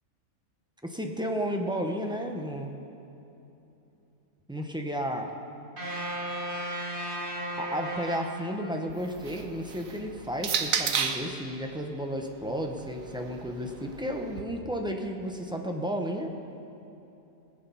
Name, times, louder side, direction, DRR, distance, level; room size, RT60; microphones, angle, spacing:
voice 1, 0.8-2.7 4.5-5.3 7.6-16.3, equal, 5° right, 2 dB, 0.5 m, -33 dB
sound 1, 5.8-9.0, equal, 35° right, 2.1 m, -35 dB
sound 2, 8.9-11.4 12.3-14.4, right 7 dB, 65° right, 1.1 m, -33 dB
19.0 x 7.8 x 5.6 m, 2.9 s
omnidirectional pair, 1.6 m